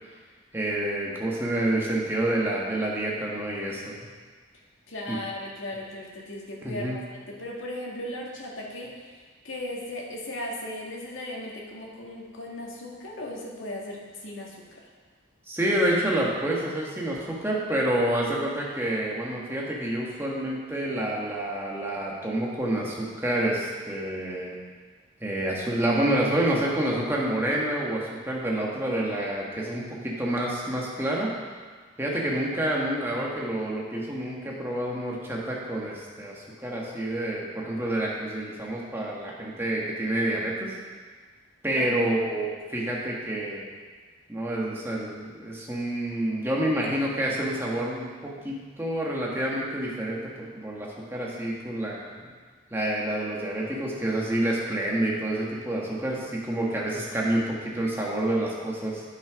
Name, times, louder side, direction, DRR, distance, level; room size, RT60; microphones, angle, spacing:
voice 1, 0.5-4.0 5.1-5.2 6.6-7.0 15.5-24.6 25.2-31.3 32.0-40.7 41.6-43.7 44.3-52.3 52.7-59.0, right 1 dB, 10° right, -4 dB, 1.6 m, -28 dB
voice 2, 4.9-8.9 9.4-14.8 41.8-42.2, left 1 dB, 80° left, -2 dB, 2.0 m, -37 dB
9.8 x 7.4 x 5.1 m, 1.5 s
head